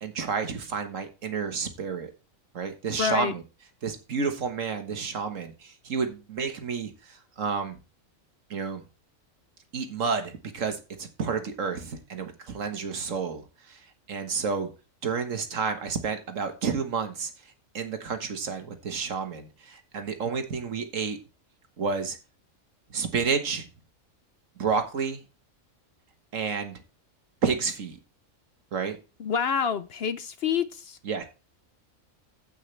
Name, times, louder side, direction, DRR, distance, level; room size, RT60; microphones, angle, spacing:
voice 1, 0.0-2.1 2.5-3.4 3.8-7.8 8.5-8.8 9.7-13.8 14.1-14.7 15.0-17.3 17.7-21.2 21.8-22.2 22.9-23.7 24.6-25.2 26.3-26.8 27.4-28.0 28.7-29.0 31.1-31.2, right 5 dB, 70° right, 1.7 m, -30 dB
voice 2, 3.0-3.3 29.2-31.0, left 7 dB, 60° left, 0.8 m, -27 dB
15.5 x 5.6 x 3.3 m
omnidirectional pair, 1.4 m